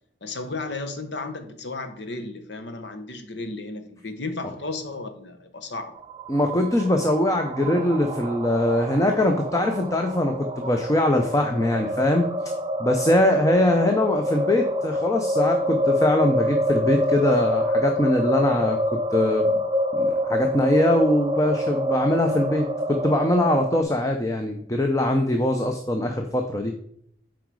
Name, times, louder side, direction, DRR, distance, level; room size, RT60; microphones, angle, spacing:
voice 1, 0.2-5.9, left 3 dB, 75° left, 1.0 m, -34 dB
sound 1, 6.0-23.8, equal, 25° right, 0.5 m, -26 dB
voice 2, 6.3-12.3 12.8-18.8 19.1-19.6 19.9-26.7, left 1 dB, 20° left, 0.6 m, -22 dB
7.8 x 4.8 x 4.7 m
head